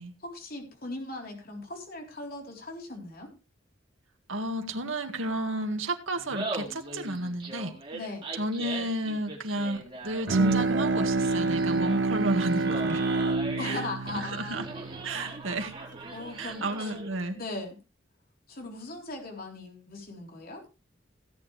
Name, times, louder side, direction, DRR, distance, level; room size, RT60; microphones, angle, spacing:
voice 1, 0.2-3.3 7.9-8.3 13.6-14.7 15.3-15.4 16.1-16.9 17.3-17.8 18.5-20.6, left 2 dB, 50° left, 2 dB, 3.8 m, -39 dB
voice 2, 4.3-7.7 8.3-13.0 13.6-13.8 14.1-14.6 15.0-15.7 16.4-17.4, right 1 dB, 90° right, 5 dB, 2.1 m, -32 dB
Laughter, 6.2-17.2, right 2 dB, 25° right, 4.3 m, -40 dB
Bowed string instrument, 10.3-15.7, right 3 dB, 65° right, 0.7 m, -28 dB
17.0 x 9.3 x 3.3 m, 0.29 s
head